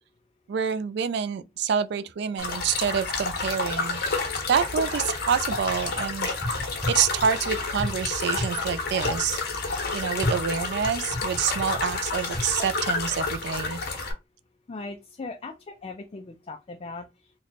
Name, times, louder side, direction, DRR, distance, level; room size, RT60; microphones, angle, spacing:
voice 1, 0.5-4.0 4.5-6.4 6.9-9.4 9.9-13.8, right 7 dB, 60° right, 0.3 m, -27 dB
sound 1, 2.4-14.1, left 3 dB, 60° left, 0.9 m, -30 dB
sound 2, 5.5-6.0 6.4-7.3 7.8-8.5 9.0-9.2 10.2-12.0 12.3-12.5, left 1 dB, ahead, 0.8 m, -31 dB
voice 2, 14.7-17.1, left 3 dB, 30° left, 0.3 m, -38 dB
3.1 x 2.2 x 4.0 m
head